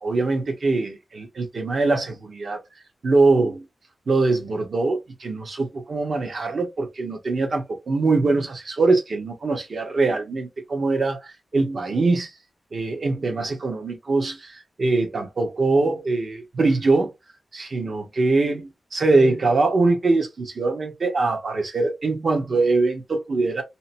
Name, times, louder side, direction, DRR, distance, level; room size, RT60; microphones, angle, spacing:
voice 1, 0.0-2.6 3.0-3.7 4.1-12.3 12.7-17.1 17.5-23.6, right 3 dB, 60° right, 0.9 m, -22 dB
2.8 x 2.1 x 2.6 m
wide cardioid pair, 85°, 0 cm